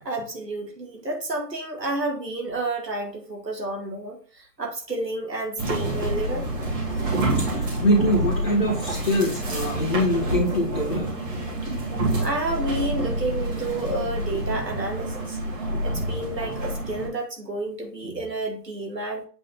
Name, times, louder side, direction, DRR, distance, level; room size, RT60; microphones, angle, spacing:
voice 1, 0.0-6.5 12.2-19.2, right 2 dB, 85° right, 1 dB, 2.3 m, -30 dB
sound 1, 5.6-17.1, right 1 dB, 15° right, 1.3 m, -27 dB
voice 2, 7.5-11.1, equal, 35° left, -4 dB, 1.3 m, -23 dB
7.6 x 3.3 x 3.9 m, 0.40 s
figure-of-eight pair, 150°, 49 cm